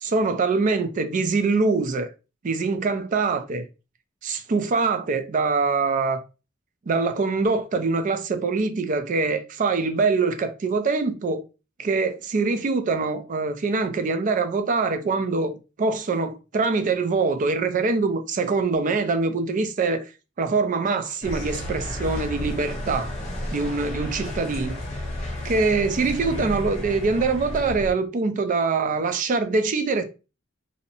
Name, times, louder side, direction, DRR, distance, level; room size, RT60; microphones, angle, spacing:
voice 1, 0.0-2.1 2.4-3.6 4.2-6.2 6.9-11.4 11.8-20.1 20.4-23.2 23.5-24.8 25.4-30.0, right 4 dB, 40° right, 0.3 m, -24 dB
sound 1, 21.2-27.9, left 1 dB, 35° left, 0.9 m, -32 dB
2.6 x 2.0 x 2.7 m
head